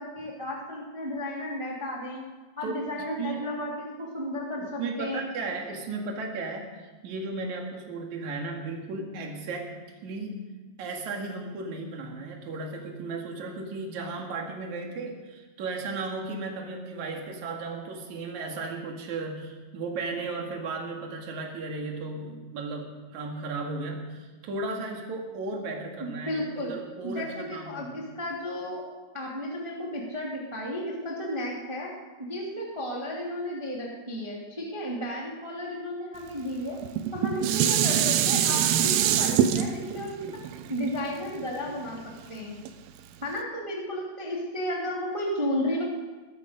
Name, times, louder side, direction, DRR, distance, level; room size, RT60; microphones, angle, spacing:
voice 1, 0.0-2.2 2.6-5.3 26.0-26.7 27.0-28.8 29.1-31.9 32.2-36.8 37.1-40.3 40.7-42.0 42.3-42.6 43.2-45.8, left 1 dB, 10° right, -3 dB, 1.6 m, -33 dB
voice 2, 4.6-9.7 10.0-10.4 10.8-28.0, right 3 dB, 50° right, 1 dB, 3.0 m, -35 dB
Dishes pots and pans, 36.8-42.1 42.7-42.8, right 10 dB, 75° right, 2.3 m, -24 dB
19.5 x 13.0 x 5.2 m, 1.3 s
omnidirectional pair, 4.9 m